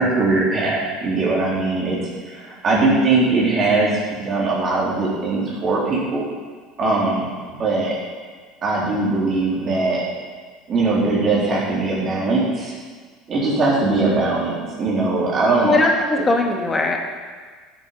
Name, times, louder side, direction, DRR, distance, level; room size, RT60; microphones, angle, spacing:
voice 1, 0.0-2.0 2.3-6.2 6.8-8.0 8.6-10.0 10.7-12.7 13.3-15.8, right 3 dB, 40° right, -5 dB, 3.8 m, -20 dB
voice 2, 15.6-17.0, left 2 dB, 20° left, 2 dB, 2.0 m, -19 dB
10.0 x 9.1 x 6.0 m, 1.6 s
hypercardioid pair, 70°, 0 cm